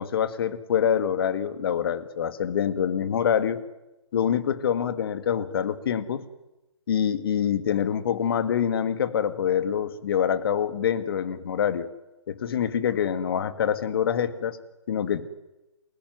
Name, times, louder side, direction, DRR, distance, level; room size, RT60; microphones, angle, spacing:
voice 1, 0.0-3.6 4.1-6.2 6.9-11.9 12.3-14.6 14.9-15.3, left 8 dB, 45° left, 13 dB, 2.0 m, -25 dB
28.5 x 20.0 x 9.6 m, 0.97 s
hypercardioid pair, 150°, 17 cm